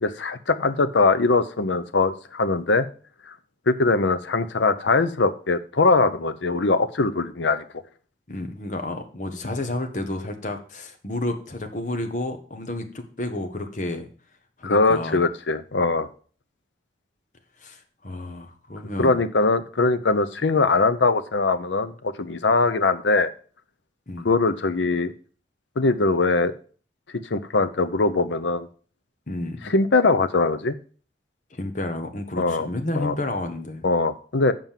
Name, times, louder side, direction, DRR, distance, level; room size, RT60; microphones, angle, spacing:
voice 1, 0.0-2.9 3.7-7.6 14.6-16.1 19.0-23.3 24.2-25.1 25.8-26.5 27.3-28.7 29.6-30.7 32.4-32.7 33.0-33.1 33.8-34.5, left 3 dB, 85° left, 11 dB, 0.7 m, -21 dB
voice 2, 8.3-14.1 14.6-15.2 17.6-19.2 24.1-24.3 29.3-29.7 31.5-33.8, left 1 dB, 45° left, 6 dB, 1.3 m, -31 dB
7.6 x 5.3 x 7.3 m, 0.42 s
head